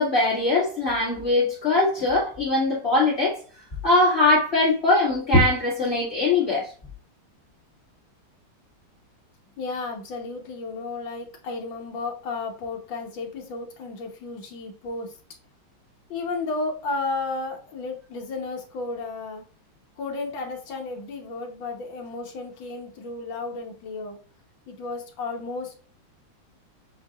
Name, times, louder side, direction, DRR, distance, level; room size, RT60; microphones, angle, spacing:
voice 1, 0.0-3.4 3.8-6.7, left 2 dB, 30° left, 2.0 m, -21 dB
voice 2, 9.6-15.2 16.1-19.4 20.0-24.2 24.7-25.7, left 3 dB, 70° left, 1.8 m, -33 dB
7.9 x 2.8 x 2.4 m
omnidirectional pair, 2.2 m